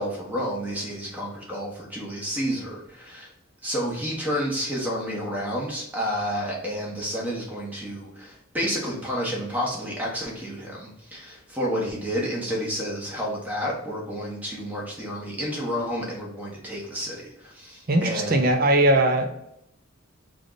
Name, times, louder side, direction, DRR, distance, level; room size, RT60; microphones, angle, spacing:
voice 1, 0.0-3.3 3.6-18.4, equal, 10° right, -3 dB, 1.1 m, -30 dB
voice 2, 17.9-19.4, right 1 dB, 45° right, 4 dB, 0.6 m, -20 dB
3.6 x 2.5 x 3.8 m, 0.80 s
head